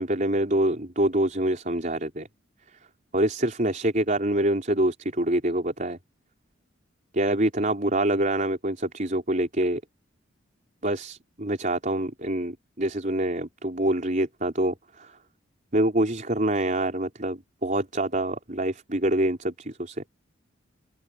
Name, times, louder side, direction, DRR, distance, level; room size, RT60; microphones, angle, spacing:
voice 1, 0.0-2.3 3.1-6.0 7.1-9.8 10.8-15.2 15.7-20.0, right 1 dB, 40° right, 4.5 m, -26 dB
head